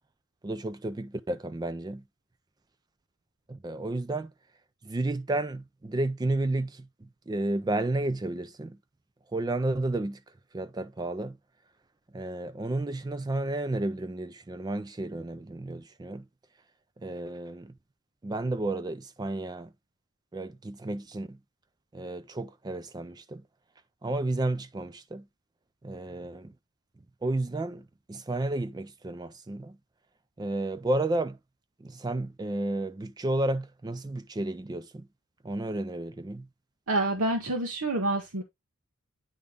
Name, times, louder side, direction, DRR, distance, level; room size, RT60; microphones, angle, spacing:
voice 1, 0.4-2.0 3.5-4.3 4.8-6.9 7.3-8.8 9.3-10.2 10.5-11.4 12.1-16.2 17.0-17.7 18.2-19.7 20.3-21.4 21.9-23.4 24.0-25.3 25.8-26.5 27.2-29.8 30.4-31.4 31.8-35.1 35.4-36.5, right 2 dB, 20° right, 0.3 m, -32 dB
voice 2, 36.9-38.4, right 2 dB, 85° right, 1.2 m, -27 dB
9.4 x 3.7 x 3.5 m
head